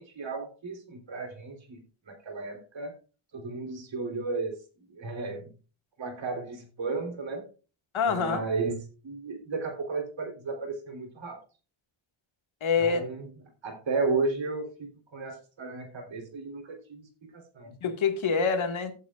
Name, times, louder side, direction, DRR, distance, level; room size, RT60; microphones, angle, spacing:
voice 1, 0.0-3.0 3.3-4.6 4.9-5.5 6.0-7.5 8.1-11.4 12.8-13.3 13.6-17.1 17.5-17.8, right 4 dB, 65° right, 3.5 m, -34 dB
voice 2, 7.9-8.5 12.6-13.0 17.8-18.9, left 5 dB, 70° left, 1.9 m, -26 dB
15.5 x 8.3 x 2.4 m
wide cardioid pair, 170°, 49 cm